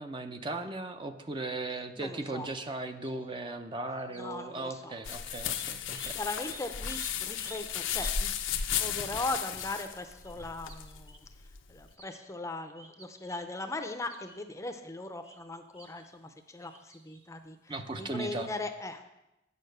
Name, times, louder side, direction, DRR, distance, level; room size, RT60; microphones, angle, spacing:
voice 1, 0.0-6.2 17.7-18.5, right 2 dB, 25° right, 7 dB, 0.6 m, -37 dB
voice 2, 2.0-2.5 4.2-5.0 5.8-8.3 8.7-11.2 11.7-19.0, left 2 dB, 15° left, 7 dB, 0.6 m, -39 dB
sound 1, 3.0-3.3 4.0-4.4 4.7-4.8 5.1-8.2 8.5-8.8 9.5-9.9 10.3-10.4 10.7-11.2 11.9-12.2 12.8-13.4 14.1-14.4 15.0-15.4 15.7-16.1 16.6-17.3 18.1-18.3, equal, 10° right, 0.9 m, -50 dB
sound 2, 5.0-11.9, left 8 dB, 90° left, 0.7 m, -35 dB
9.3 x 6.7 x 6.5 m, 0.93 s
head